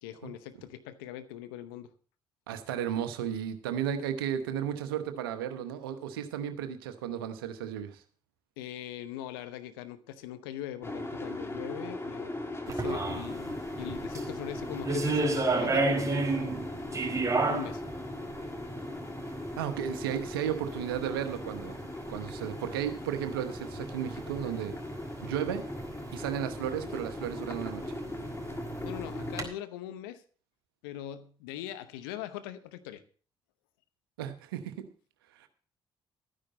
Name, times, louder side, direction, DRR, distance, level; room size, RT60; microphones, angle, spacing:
voice 1, 0.0-1.9 8.6-12.3 12.7-16.6 17.5-17.8 28.8-30.2 30.8-33.0, left 12 dB, 80° left, 10 dB, 0.8 m, -41 dB
voice 2, 2.5-8.0 19.6-21.8 22.1-24.7 25.2-25.6 26.1-27.8 34.2-34.8 35.4-35.5, right 9 dB, 85° right, 9 dB, 1.0 m, -34 dB
sound 1, 10.8-29.5, left 2 dB, 20° left, 2.5 m, -39 dB
sound 2, 12.7-29.5, right 3 dB, 25° right, 4.5 m, -34 dB
13.0 x 10.0 x 4.1 m, 0.41 s
hypercardioid pair, 45°, 12 cm